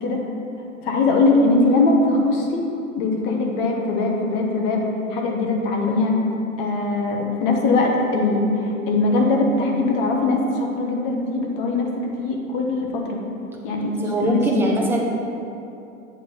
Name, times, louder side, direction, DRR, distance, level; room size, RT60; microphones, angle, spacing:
voice 1, 0.8-2.6 3.0-4.8 5.1-6.2 6.6-13.2 13.6-14.8, left 2 dB, 40° left, 1 dB, 1.2 m, -21 dB
voice 2, 13.7-15.0, right 2 dB, 5° right, -2 dB, 0.8 m, -23 dB
7.7 x 3.6 x 5.7 m, 2.7 s
figure-of-eight pair, 100°, 43 cm